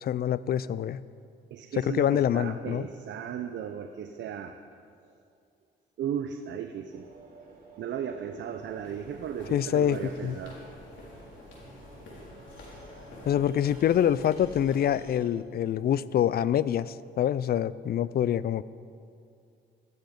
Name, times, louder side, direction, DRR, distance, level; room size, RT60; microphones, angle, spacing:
voice 1, 0.0-1.0 1.8-2.9 9.5-10.4 13.3-18.6, left 10 dB, 50° left, 18 dB, 0.4 m, -26 dB
voice 2, 1.5-4.6 6.0-7.1 7.8-10.6, right 8 dB, 65° right, 7 dB, 0.7 m, -36 dB
sound 1, 6.9-15.2, right 2 dB, 50° right, 3.8 m, -53 dB
sound 2, 8.5-15.0, left 1 dB, 75° left, 3.8 m, -48 dB
12.5 x 12.0 x 5.3 m, 2.4 s
cardioid pair, 90°, 20 cm